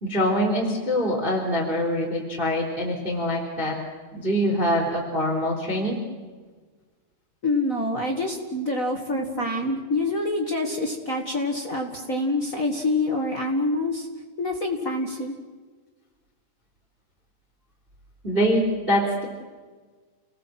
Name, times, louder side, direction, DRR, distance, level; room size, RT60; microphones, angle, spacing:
voice 1, 0.0-3.7 4.1-6.0 9.3-9.5 10.7-10.8 18.2-19.2, equal, 15° right, -1 dB, 3.4 m, -24 dB
voice 2, 7.4-14.1 14.4-15.3, left 2 dB, 40° left, 1 dB, 1.1 m, -26 dB
30.0 x 19.0 x 7.8 m, 1.4 s
omnidirectional pair, 5.1 m